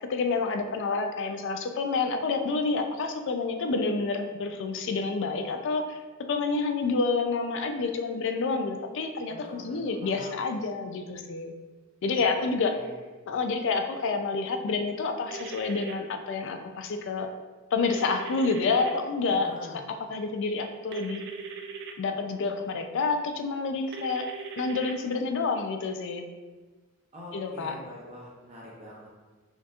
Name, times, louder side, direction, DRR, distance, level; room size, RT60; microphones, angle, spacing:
voice 1, 0.0-6.0 6.3-11.5 12.0-12.7 13.3-17.3 17.7-19.5 19.9-21.2 22.0-24.3 24.6-26.3 27.3-27.8, left 4 dB, 55° left, 5 dB, 0.4 m, -28 dB
voice 2, 9.3-10.4 12.2-13.0 19.4-19.8 27.1-29.1, left 1 dB, 30° right, -5 dB, 0.7 m, -45 dB
sound 1, 15.3-15.9 17.9-18.9 20.9-21.9 23.9-24.9, right 5 dB, 50° right, 0.3 m, -40 dB
4.3 x 2.9 x 2.4 m, 1.3 s
head